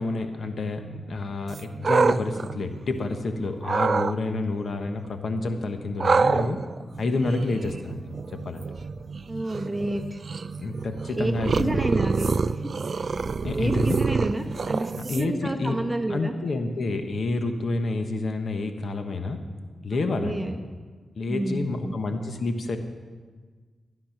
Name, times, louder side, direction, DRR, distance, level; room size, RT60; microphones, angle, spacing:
voice 1, 0.0-6.6 7.0-8.1 8.4-8.6 10.6-12.1 13.4-14.0 15.0-15.8 16.1-19.4 19.8-20.4 21.1-22.8, left 2 dB, 60° left, 6 dB, 1.2 m, -29 dB
sound 1, 1.5-3.2 3.6-4.1 6.0-15.5, right 4 dB, 55° right, 0.4 m, -27 dB
voice 2, 9.3-10.2 11.1-11.3 11.6-12.7 13.5-16.3 20.2-20.6 21.3-21.9, right 1 dB, 15° right, 4 dB, 1.4 m, -30 dB
15.0 x 9.6 x 5.9 m, 1.5 s
cardioid pair, 80°, 0 cm